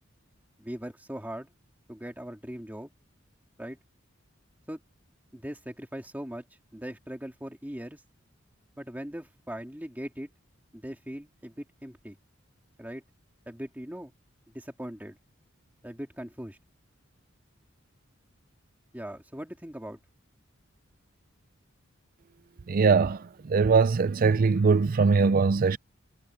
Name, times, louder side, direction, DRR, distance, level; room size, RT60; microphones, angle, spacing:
voice 1, 0.6-1.5 1.9-2.9 3.6-3.8 4.7-4.8 5.3-6.4 6.7-8.0 8.8-10.3 10.7-12.2 12.8-13.0 13.5-14.1 14.5-15.2 15.8-16.6 18.9-20.0, equal, 10° right, 2.5 m, -40 dB
voice 2, 22.7-23.2 23.4-25.8, right 4 dB, 45° right, 0.5 m, -21 dB
head